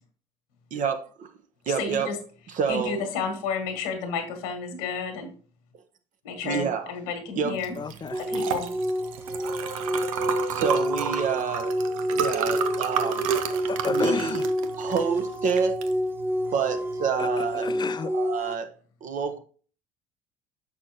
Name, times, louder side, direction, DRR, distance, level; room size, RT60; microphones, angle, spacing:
voice 1, 0.7-1.3 1.7-2.1 2.5-3.0 6.4-6.9 7.4-7.5 10.5-11.7 12.1-13.3 13.8-14.4 14.8-15.8 16.5-17.7 18.1-18.7 19.0-19.4, right 6 dB, 50° right, 1.1 m, -28 dB
voice 2, 1.7-2.2 2.7-5.3 6.2-7.7 8.2-8.7, left 5 dB, 75° left, 1.5 m, -31 dB
Liquid, 7.6-17.7, right 8 dB, 80° right, 0.6 m, -32 dB
voice 3, 7.8-8.2 13.5-14.5 17.2-18.1, left 6 dB, 25° left, 0.6 m, -32 dB
sound 1, 8.1-18.5, equal, 15° right, 0.7 m, -29 dB
6.3 x 6.1 x 2.9 m
hypercardioid pair, 65°, 17 cm